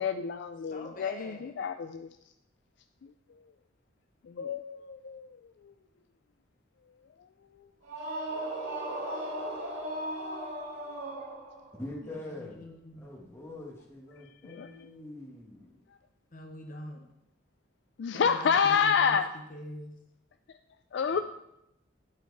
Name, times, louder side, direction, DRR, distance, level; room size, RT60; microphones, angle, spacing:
voice 1, 0.0-2.2 3.0-3.4 4.2-5.7 7.2-7.7 8.8-8.9 10.9-11.0 14.2-14.7 15.9-16.0 18.0-19.3 20.5-20.6 20.9-21.2, left 6 dB, 60° left, 8 dB, 0.3 m, -30 dB
voice 2, 0.7-1.5 12.0-13.1 16.3-17.1 18.1-19.2 19.5-19.9, left 1 dB, 45° left, 3 dB, 0.9 m, -44 dB
sound 1, 7.8-11.8, right 1 dB, 85° right, 2.1 m, -36 dB
voice 3, 11.8-12.6 12.9-15.8 21.1-21.2, left 1 dB, 15° left, -2 dB, 1.5 m, -44 dB
9.5 x 4.6 x 4.6 m, 0.81 s
head